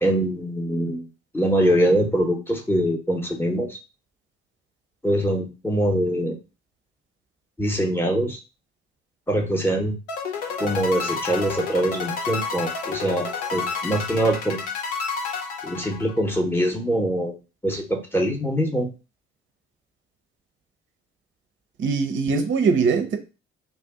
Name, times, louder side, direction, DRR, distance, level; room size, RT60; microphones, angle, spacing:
voice 1, 0.0-1.1 1.3-3.8 5.0-6.4 7.6-8.4 9.3-10.0 10.6-14.6 15.6-17.4 17.6-18.9, right 1 dB, 5° left, 0.8 m, -23 dB
sound 1, 10.1-16.4, left 5 dB, 75° left, 0.6 m, -30 dB
voice 2, 21.8-23.2, right 5 dB, 35° right, 0.6 m, -21 dB
2.5 x 2.3 x 3.6 m
figure-of-eight pair, 45°, 34 cm